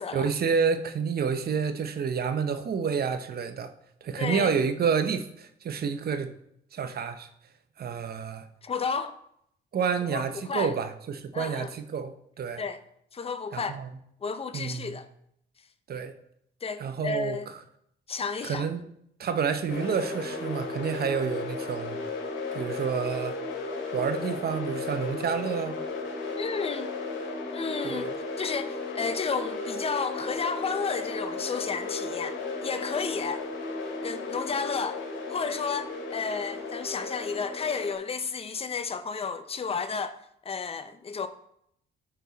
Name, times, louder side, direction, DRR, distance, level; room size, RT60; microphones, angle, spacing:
voice 1, 0.1-3.7 4.0-6.4 6.7-7.3 7.8-8.5 9.7-12.6 13.5-14.0 14.5-15.0 15.9-16.1 16.8-17.4 18.4-18.9 19.2-22.0 22.5-23.4 23.9-25.8 27.8-28.1, right 6 dB, 50° right, 0.9 m, -29 dB
voice 2, 4.2-4.5 8.6-9.2 10.1-10.7 11.3-11.7 12.6-12.8 13.1-13.7 14.2-15.0 16.6-17.5 18.1-18.7 26.4-26.9 27.5-28.1 28.4-33.5 34.0-35.0 35.3-41.3, left 5 dB, 30° left, 0.7 m, -32 dB
sound 1, 19.7-37.9, left 3 dB, 75° left, 2.7 m, -35 dB
12.0 x 4.6 x 4.1 m
cardioid pair, 90°, 20 cm